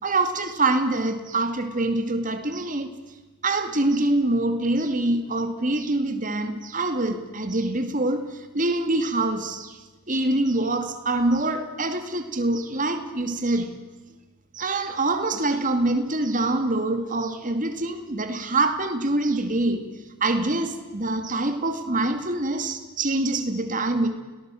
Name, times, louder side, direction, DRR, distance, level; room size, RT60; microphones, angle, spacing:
voice 1, 0.0-2.9 3.4-9.8 10.1-13.7 14.5-19.9 20.2-24.1, right 2 dB, 35° right, 7 dB, 2.3 m, -25 dB
30.0 x 18.5 x 7.8 m, 1.2 s
head